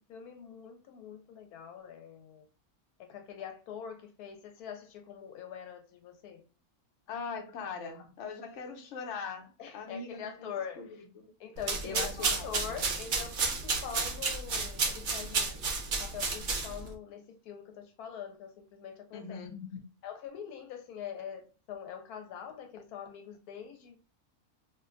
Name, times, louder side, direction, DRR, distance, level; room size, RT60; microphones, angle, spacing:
voice 1, 0.1-2.5 3.0-6.4 7.6-8.0 9.6-11.0 11.4-19.7 20.0-24.0, left 8 dB, 90° left, 1.1 m, -44 dB
voice 2, 7.1-10.8 11.8-12.5 19.1-19.5, left 5 dB, 60° left, 1.0 m, -40 dB
sound 1, 11.6-16.9, right 4 dB, 50° right, 0.6 m, -32 dB
2.7 x 2.2 x 3.7 m
omnidirectional pair, 1.6 m